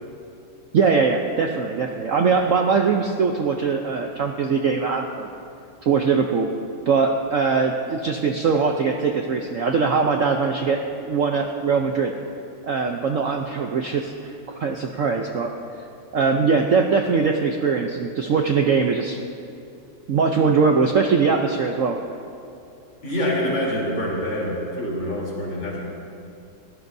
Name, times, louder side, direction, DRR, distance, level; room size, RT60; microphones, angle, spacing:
voice 1, 0.7-5.3 5.8-6.5 6.9-12.1 12.6-14.3 14.6-15.5 16.1-19.2 20.1-22.0, right 5 dB, 65° right, 3 dB, 0.8 m, -21 dB
voice 2, 23.0-25.8, equal, 75° left, -4 dB, 4.3 m, -26 dB
22.5 x 17.5 x 2.7 m, 2.6 s
omnidirectional pair, 2.1 m